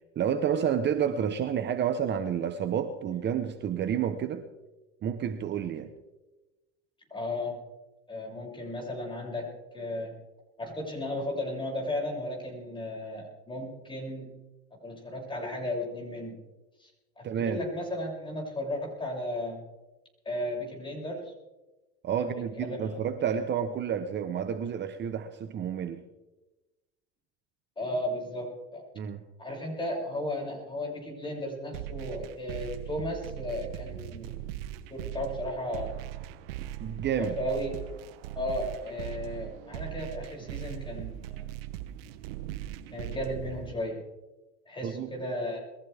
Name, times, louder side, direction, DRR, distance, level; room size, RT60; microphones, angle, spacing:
voice 1, 0.2-4.4 5.0-5.9 17.2-17.7 22.0-26.0 29.0-29.2 36.6-37.3 44.8-45.1, right 8 dB, 35° right, 8 dB, 1.2 m, -30 dB
voice 2, 7.1-7.6 8.1-10.2 10.6-14.3 14.7-16.4 16.8-16.9 17.2-19.6 20.3-21.3 22.2-22.3 22.6-23.0 27.8-28.8 29.4-34.3 34.9-36.0 37.2-38.0 38.4-41.5 42.9-44.0 44.7-45.6, left 1 dB, 15° left, -2 dB, 7.3 m, -35 dB
sound 1, 31.7-43.7, right 13 dB, 80° right, 1.0 m, -39 dB
22.5 x 15.5 x 3.6 m, 1.1 s
supercardioid pair, 110°, 29 cm